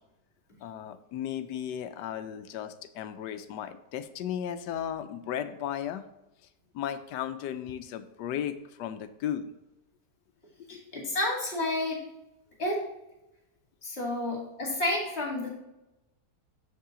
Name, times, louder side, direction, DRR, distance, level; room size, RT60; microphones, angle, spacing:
voice 1, 0.6-6.0 6.7-9.5 10.7-10.8, left 9 dB, 85° left, 11 dB, 1.2 m, -35 dB
voice 2, 10.7-12.0 12.6-12.8 13.8-15.5, left 1 dB, 40° left, -2 dB, 2.4 m, -30 dB
7.4 x 5.6 x 3.7 m, 0.92 s
omnidirectional pair, 1.8 m